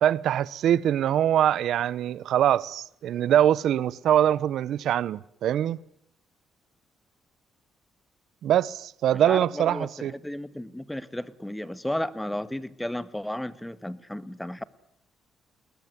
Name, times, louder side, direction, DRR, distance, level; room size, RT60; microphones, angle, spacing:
voice 1, 0.0-5.8 8.4-10.1, right 10 dB, 75° right, 0.9 m, -23 dB
voice 2, 9.2-14.7, left 1 dB, 5° left, 1.5 m, -33 dB
22.0 x 19.5 x 9.6 m
cardioid pair, 90°, 0 cm